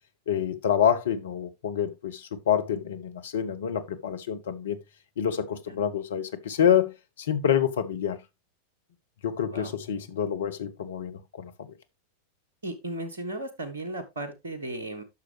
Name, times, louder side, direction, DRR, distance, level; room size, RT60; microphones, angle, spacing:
voice 1, 0.3-4.8 5.2-8.2 9.2-11.7, left 8 dB, 60° left, 1.0 m, -27 dB
voice 2, 12.6-15.0, right 1 dB, 70° right, 1.5 m, -35 dB
10.5 x 6.3 x 3.0 m
figure-of-eight pair, 90°, 0 cm